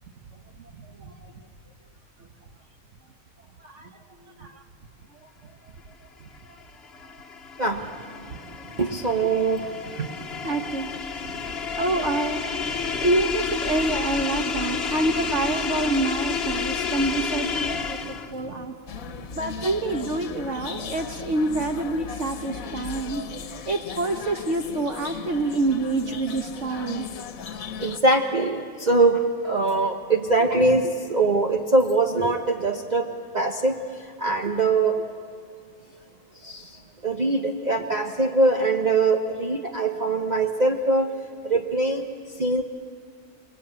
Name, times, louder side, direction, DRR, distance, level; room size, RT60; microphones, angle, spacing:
voice 1, 0.8-1.3 3.6-4.0 4.2-4.6 5.2-5.3 6.5-6.6 8.3-8.7 10.0-10.1 10.4-10.9 11.8-12.5 12.9-18.7 19.3-23.2 23.7-27.1, right 2 dB, 60° right, 4 dB, 1.6 m, -27 dB
sound 1, 6.5-18.4, left 5 dB, 50° left, 1.4 m, -30 dB
voice 2, 7.6-8.0 8.7-10.0 11.4-11.8 12.9-13.0 18.0-18.7 19.0-19.4 27.8-35.0 36.4-41.1 41.4-42.1 42.4-42.6, right 2 dB, 35° right, 3 dB, 1.1 m, -23 dB
sound 2, 18.9-28.0, left 7 dB, 85° left, 1.4 m, -37 dB
29.0 x 20.5 x 8.9 m, 2.2 s
omnidirectional pair, 1.4 m